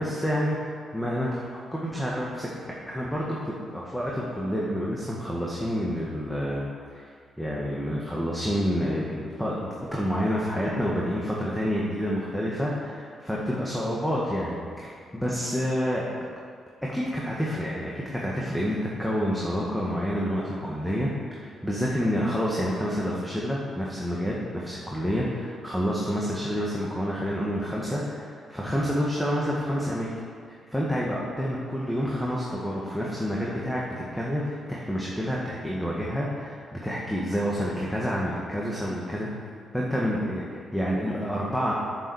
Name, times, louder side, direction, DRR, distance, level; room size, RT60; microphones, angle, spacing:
voice 1, 0.0-1.4 1.7-2.5 2.9-7.1 7.4-16.0 16.8-30.1 30.5-33.8 34.1-39.3 39.7-41.7, equal, 5° left, -4 dB, 1.7 m, -28 dB
7.4 x 7.3 x 7.1 m, 2.1 s
cardioid pair, 85°, 0 cm